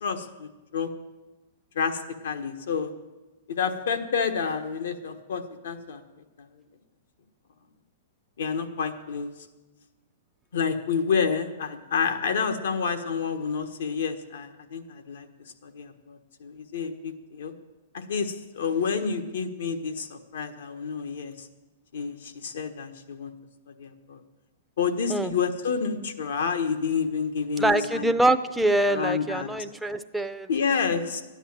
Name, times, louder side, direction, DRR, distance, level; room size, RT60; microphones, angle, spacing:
voice 1, 0.0-0.9 1.7-2.9 3.5-6.0 6.4-6.5 8.4-9.3 10.5-15.3 15.6-17.5 17.9-21.5 21.9-23.3 23.7-24.2 24.8-28.1 28.8-29.5 30.5-31.2, left 6 dB, 75° left, 7 dB, 1.4 m, -29 dB
voice 2, 27.6-30.5, right 1 dB, ahead, 7 dB, 0.5 m, -24 dB
13.0 x 10.0 x 7.3 m, 1.1 s
hypercardioid pair, 145°, 0 cm